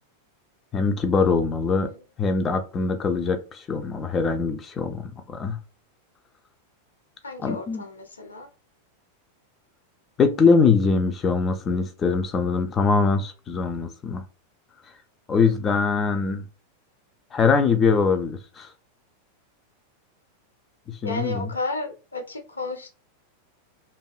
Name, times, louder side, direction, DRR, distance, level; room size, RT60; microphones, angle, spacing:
voice 1, 0.7-1.9 2.2-5.6 7.4-7.8 10.2-14.2 15.3-16.4 17.3-18.7 20.9-21.5, left 5 dB, 25° left, 0.3 m, -22 dB
voice 2, 7.2-8.5 21.0-22.9, left 2 dB, 75° left, 0.6 m, -33 dB
2.5 x 2.2 x 2.3 m
figure-of-eight pair, 90°, 0 cm